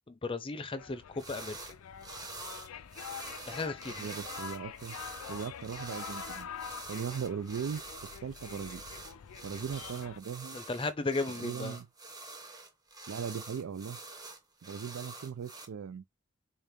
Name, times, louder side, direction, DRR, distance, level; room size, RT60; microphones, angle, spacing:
voice 1, 0.1-1.6 3.5-4.1 10.5-11.8, left 3 dB, 25° left, 0.5 m, -35 dB
sound 1, 0.8-10.2, left 8 dB, 85° left, 0.4 m, -46 dB
sound 2, 1.2-1.7 2.0-15.7, right 3 dB, 20° right, 0.8 m, -46 dB
voice 2, 4.0-5.0 5.3-6.5 6.9-7.8 8.2-8.8 9.4-10.6 11.4-11.9 13.1-14.0 14.6-16.0, right 7 dB, 85° right, 0.4 m, -38 dB
3.7 x 2.7 x 3.5 m
head